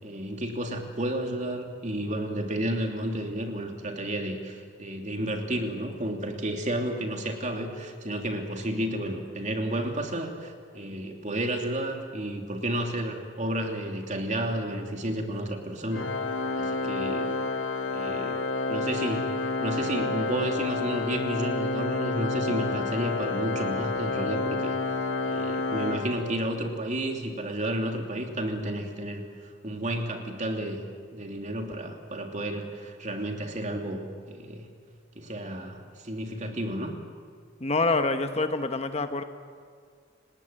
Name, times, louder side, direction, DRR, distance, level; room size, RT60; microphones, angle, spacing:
voice 1, 0.0-16.1 16.5-17.4 17.9-18.4 18.7-24.8 25.2-29.2 29.6-30.8 31.1-34.7 35.1-36.9, right 1 dB, 40° right, 3 dB, 3.0 m, -31 dB
Organ, 15.9-26.7, left 3 dB, 80° left, 1.8 m, -29 dB
voice 2, 37.6-39.2, left 3 dB, 35° left, 8 dB, 1.2 m, -26 dB
29.5 x 19.0 x 8.9 m, 2.1 s
head